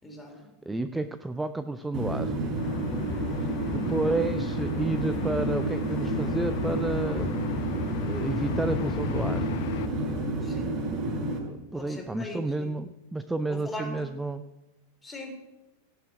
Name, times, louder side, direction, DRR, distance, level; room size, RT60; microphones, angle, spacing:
voice 1, 0.0-0.5 10.4-10.8 11.7-12.7 13.5-14.1 15.0-15.3, left 2 dB, 10° left, 2 dB, 3.7 m, -40 dB
voice 2, 0.7-2.3 3.7-7.3 8.0-9.5 11.4-14.4, right 2 dB, 10° right, 11 dB, 0.6 m, -31 dB
sound 1, 1.9-11.4, right 2 dB, 30° right, 4.2 m, -30 dB
sound 2, 2.6-9.9, left 10 dB, 50° left, 0.9 m, -36 dB
17.0 x 7.5 x 7.8 m, 1.0 s
figure-of-eight pair, 90°, 0 cm